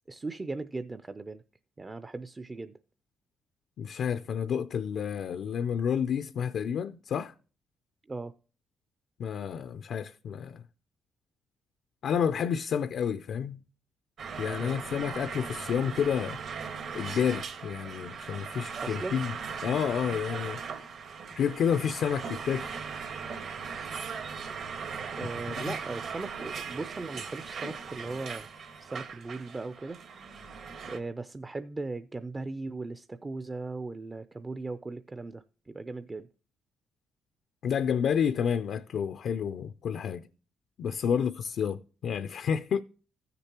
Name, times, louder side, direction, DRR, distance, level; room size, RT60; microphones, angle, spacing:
voice 1, 0.1-1.4 1.8-2.8 8.1-8.3 14.6-14.8 18.8-19.2 25.2-28.5 28.8-30.6 30.9-36.3 41.1-41.3, right 3 dB, 25° right, 0.4 m, -38 dB
voice 2, 3.8-7.3 9.2-10.6 12.0-13.6 14.4-16.7 16.9-19.3 19.6-20.9 21.4-22.8 25.6-25.7 37.6-40.3 40.8-42.8, left 7 dB, 65° left, 0.4 m, -30 dB
sound 1, 14.2-31.0, right 6 dB, 65° right, 1.6 m, -39 dB
15.0 x 6.7 x 2.9 m
cardioid pair, 90°, 0 cm